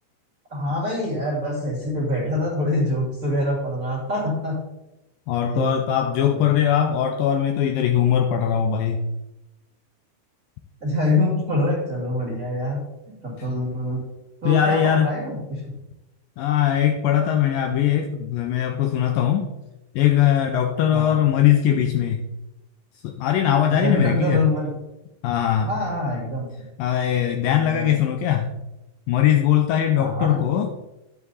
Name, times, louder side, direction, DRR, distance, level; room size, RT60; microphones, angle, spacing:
voice 1, 0.5-4.6 5.4-5.8 6.3-6.5 10.8-12.8 13.2-14.0 14.4-15.6 20.9-21.2 23.8-24.7 25.6-26.5 27.5-28.0 30.0-30.4, left 1 dB, 25° right, -5 dB, 2.5 m, -25 dB
voice 2, 5.3-9.1 14.5-15.1 16.4-19.5 20.0-22.3 23.0-24.4 25.2-25.7 26.8-28.5 29.1-30.7, left 10 dB, 85° left, 4 dB, 2.1 m, -20 dB
10.0 x 7.4 x 4.1 m, 0.98 s
omnidirectional pair, 4.6 m